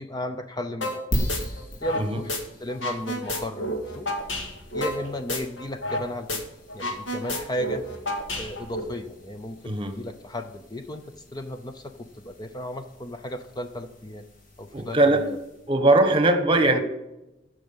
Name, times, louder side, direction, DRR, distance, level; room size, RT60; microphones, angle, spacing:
voice 1, 0.0-1.3 1.8-2.3 2.6-4.1 4.7-6.4 6.7-7.9 8.4-11.1 11.3-14.2 14.6-15.4, equal, 20° left, 7 dB, 0.6 m, -35 dB
sound 1, 0.8-1.0 1.3-2.4 2.7-6.0 6.3-6.4 6.7-8.8, left 1 dB, 75° left, 2.1 m, -30 dB
sound 2, 1.1-15.8, equal, 45° left, 2.3 m, -39 dB
voice 2, 14.7-15.3 15.7-16.8, right 2 dB, 30° right, 8 dB, 1.2 m, -20 dB
15.0 x 6.3 x 5.4 m, 0.94 s
head